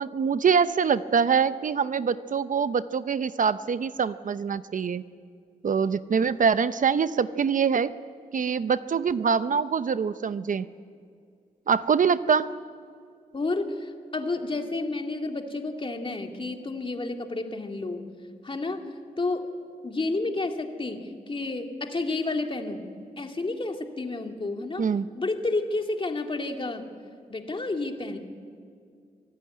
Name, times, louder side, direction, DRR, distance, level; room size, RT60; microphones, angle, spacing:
voice 1, 0.0-5.0 5.6-7.9 8.3-10.7 11.7-12.5 24.8-25.1, right 6 dB, 60° right, 13 dB, 0.7 m, -24 dB
voice 2, 13.3-18.1 18.4-18.8 19.2-19.5 19.8-22.9 23.2-24.9 25.1-26.9 27.3-28.2, left 2 dB, 35° left, 4 dB, 2.3 m, -30 dB
25.0 x 16.0 x 9.6 m, 2.3 s
wide cardioid pair, 90°, 15 cm